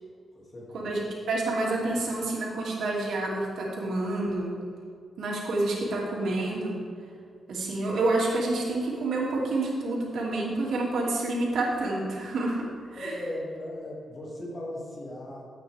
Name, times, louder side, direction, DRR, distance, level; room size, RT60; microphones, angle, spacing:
voice 1, 0.3-0.9 13.0-15.5, left 1 dB, 35° left, -4 dB, 2.5 m, -37 dB
voice 2, 1.3-4.6 5.2-6.8 7.5-13.2, right 2 dB, 80° right, -4 dB, 2.6 m, -28 dB
13.5 x 8.5 x 3.6 m, 2.3 s
wide cardioid pair, 125°, 0 cm